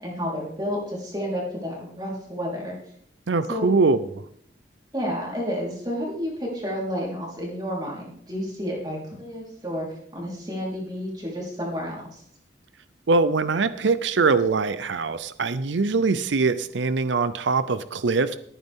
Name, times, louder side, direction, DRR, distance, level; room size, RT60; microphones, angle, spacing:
voice 1, 0.0-2.8 3.5-3.7 4.9-9.9 10.1-12.2, equal, 20° right, -3 dB, 4.2 m, -30 dB
voice 2, 3.3-4.2 13.1-18.4, right 4 dB, 85° right, 14 dB, 0.6 m, -22 dB
18.5 x 9.4 x 3.7 m, 0.66 s
head